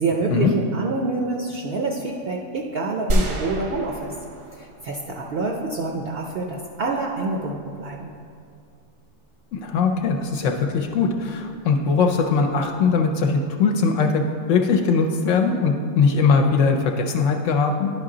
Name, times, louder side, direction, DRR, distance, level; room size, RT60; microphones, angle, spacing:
voice 1, 0.0-4.1 4.5-8.1, right 3 dB, 60° right, 0 dB, 0.7 m, -27 dB
sound 1, 3.1-5.4, equal, 80° right, 1.3 m, -27 dB
voice 2, 9.5-17.9, left 5 dB, 75° left, 2 dB, 0.9 m, -20 dB
11.0 x 4.9 x 3.8 m, 2.3 s
omnidirectional pair, 1.3 m